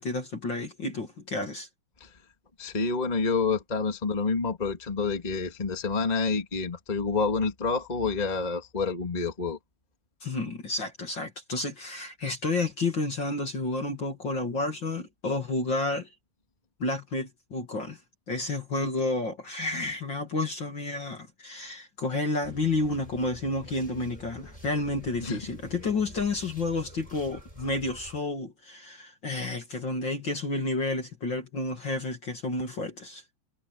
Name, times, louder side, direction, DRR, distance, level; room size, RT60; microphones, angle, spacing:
voice 1, 0.0-1.7 10.2-16.1 16.8-18.0 18.3-33.2, left 2 dB, 35° left, 2.7 m, -30 dB
voice 2, 2.6-9.6 25.2-25.4, left 4 dB, 15° left, 2.2 m, -28 dB
sound 1, 22.4-28.2, right 1 dB, 10° right, 6.9 m, -48 dB
omnidirectional pair, 3.9 m